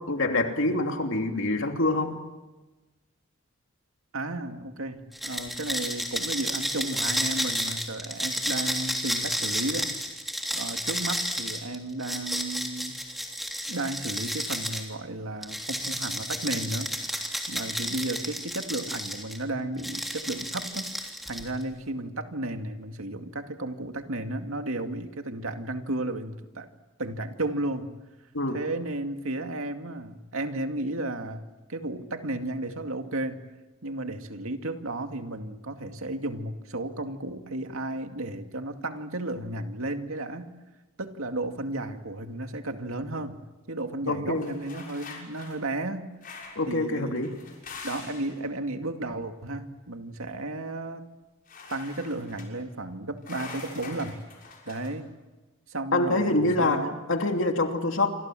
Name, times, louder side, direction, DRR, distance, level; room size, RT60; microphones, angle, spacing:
voice 1, 0.0-2.2 28.3-28.6 44.1-44.5 46.5-47.3 55.9-58.1, left 2 dB, 60° left, 4 dB, 2.9 m, -26 dB
voice 2, 4.1-9.9 10.5-13.0 13.7-17.2 17.5-20.9 21.3-26.7 27.0-27.9 28.5-31.4 31.7-33.4 33.8-40.5 41.0-43.4 43.7-46.1 46.7-47.2 47.8-51.0 51.7-54.2 54.7-55.1 55.7-57.0, right 2 dB, 75° right, 6 dB, 2.3 m, -33 dB
sound 1, 5.1-14.9 15.4-19.4 19.8-21.6, equal, ahead, 3.3 m, -31 dB
sound 2, 44.4-45.6 46.2-46.7 47.1-48.4 51.5-52.5 53.2-54.9, left 4 dB, 40° left, 6.4 m, -43 dB
28.0 x 26.0 x 7.7 m, 1.1 s
head